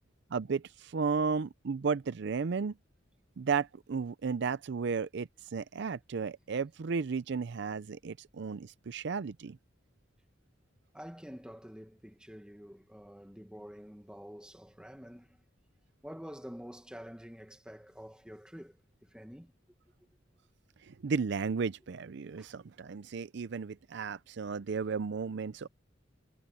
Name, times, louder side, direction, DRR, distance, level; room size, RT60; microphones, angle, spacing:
voice 1, 0.3-2.7 3.4-9.6 20.9-25.7, right 5 dB, 65° right, 0.5 m, -34 dB
voice 2, 10.9-15.4 16.0-19.5 22.4-22.5, equal, 5° right, 1.7 m, -48 dB
head